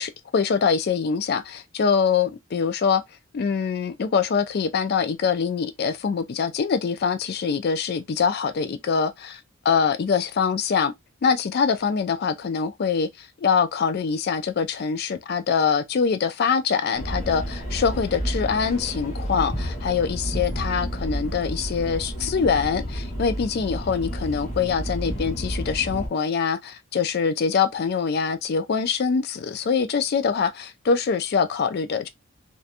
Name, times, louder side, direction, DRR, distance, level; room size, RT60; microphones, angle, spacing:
voice 1, 0.0-3.0 3.3-10.9 11.2-32.1, left 6 dB, 50° left, 0.3 m, -24 dB
sound 1, 16.9-26.1, equal, 35° left, 1.2 m, -30 dB
2.8 x 2.2 x 2.4 m
head